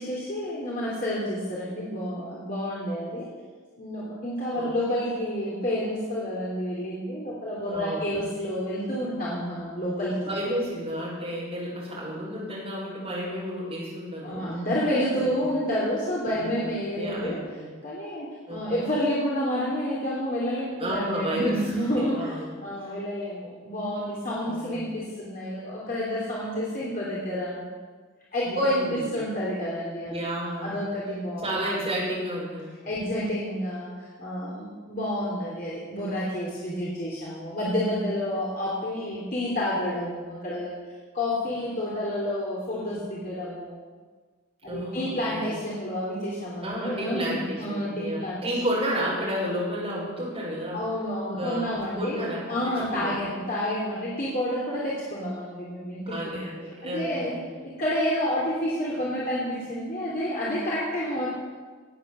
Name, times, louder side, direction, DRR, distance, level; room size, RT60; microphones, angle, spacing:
voice 1, 0.0-3.3 3.8-10.3 14.2-17.4 17.8-27.7 28.3-30.1 30.4-31.5 32.8-40.8 41.1-43.8 44.6-48.5 50.7-56.4 56.8-57.4 57.6-61.3, equal, 40° left, -6 dB, 3.3 m, -29 dB
voice 2, 7.7-8.3 10.3-14.5 15.1-15.5 16.3-17.7 18.5-18.8 20.8-21.6 21.9-22.9 24.5-24.9 28.4-29.2 30.1-30.7 31.4-32.7 44.7-45.6 46.6-50.8 51.4-53.4 56.1-57.5, equal, 25° right, -5 dB, 6.2 m, -32 dB
18.5 x 8.4 x 7.5 m, 1.4 s
head